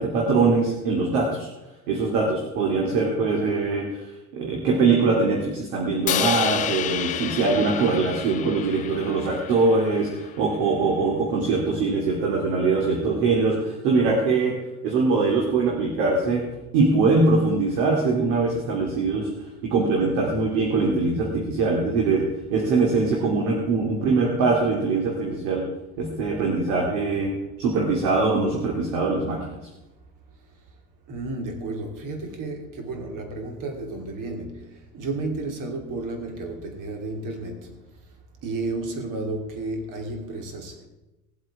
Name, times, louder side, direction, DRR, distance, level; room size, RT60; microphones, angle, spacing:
voice 1, 0.0-1.5 1.9-4.1 4.3-14.5 14.8-16.4 16.7-19.3 19.6-22.2 22.5-25.6 26.0-27.3 27.6-29.4, right 3 dB, 65° right, 2.5 m, -22 dB
Crash cymbal, 6.1-10.3, left 11 dB, 20° left, 0.3 m, -30 dB
voice 2, 31.1-37.8 38.4-40.9, right 2 dB, 45° right, 2.8 m, -32 dB
19.0 x 7.9 x 4.8 m
figure-of-eight pair, 70°, 44 cm